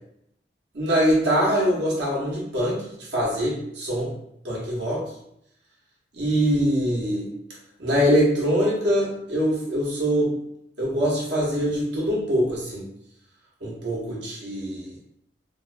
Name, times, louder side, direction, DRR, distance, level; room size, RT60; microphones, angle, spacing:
voice 1, 0.7-2.8 3.1-4.1 4.4-5.0 6.1-7.3 7.8-10.3 10.8-12.8 13.6-14.9, equal, 75° right, -5 dB, 0.8 m, -23 dB
2.5 x 2.1 x 2.4 m, 0.76 s
head